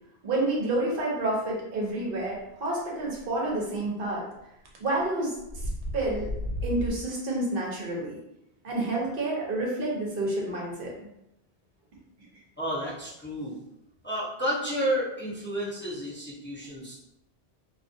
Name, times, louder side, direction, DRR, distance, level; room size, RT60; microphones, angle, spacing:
voice 1, 0.2-4.2 4.8-5.4 5.6-6.3 6.6-8.2 8.6-10.9, right 2 dB, 60° right, -3 dB, 0.8 m, -29 dB
sound 1, 3.2-3.3 4.7-4.9 5.4-7.0, equal, 90° right, 0.9 m, -33 dB
voice 2, 12.6-13.6 14.0-16.9, equal, 15° left, -8 dB, 0.5 m, -31 dB
2.4 x 2.3 x 2.6 m, 0.84 s
omnidirectional pair, 1.1 m